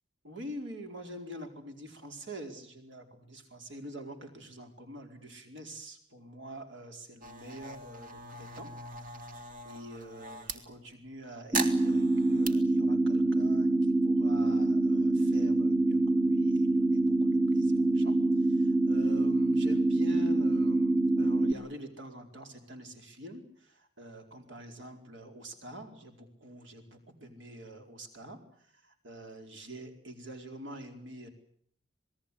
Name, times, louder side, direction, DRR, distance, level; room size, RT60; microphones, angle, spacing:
voice 1, 0.2-8.7 9.0-31.3, right 1 dB, 60° right, 4 dB, 4.5 m, -46 dB
sound 1, 7.2-10.6 11.5-12.5, right 3 dB, 40° right, 2.3 m, -39 dB
sound 2, 11.5-21.5, right 2 dB, 15° right, 1.2 m, -25 dB
27.0 x 19.5 x 8.5 m, 0.64 s
head